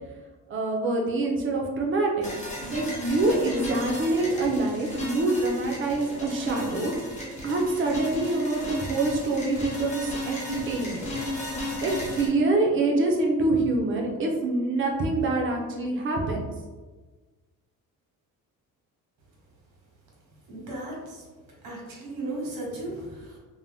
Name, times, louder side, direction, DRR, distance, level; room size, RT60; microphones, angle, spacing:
voice 1, 0.5-2.3 2.7-6.9 7.4-11.0 11.8-16.4, right 2 dB, 35° right, 0 dB, 0.4 m, -25 dB
sound 1, 2.2-12.3, left 1 dB, 20° left, 0.7 m, -34 dB
voice 2, 20.5-21.2 21.6-23.4, right 2 dB, 85° right, -3 dB, 1.1 m, -35 dB
2.6 x 2.1 x 3.3 m, 1.3 s
cardioid pair, 175°, 34 cm